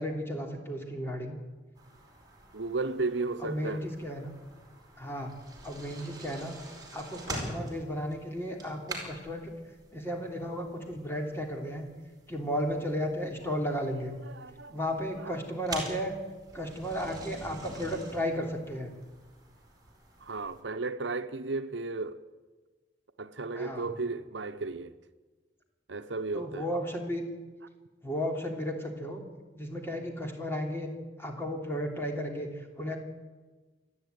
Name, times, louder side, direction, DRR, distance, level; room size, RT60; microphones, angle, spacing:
voice 1, 0.0-1.4 3.4-4.3 5.0-5.3 5.6-6.5 6.9-9.5 9.9-11.9 12.3-14.1 14.7-16.1 16.5-19.0 23.5-23.9 26.3-27.2 28.0-29.2 29.5-30.9 31.2-33.0, equal, 15° left, 3.1 m, -34 dB
sound 1, 1.8-20.6, right 2 dB, 20° right, 4.9 m, -46 dB
voice 2, 2.5-3.8 13.4-13.5 14.2-14.8 15.2-15.3 20.2-22.2 23.2-24.9 25.9-26.7, right 3 dB, 80° right, 0.9 m, -34 dB
27.5 x 10.5 x 9.4 m
head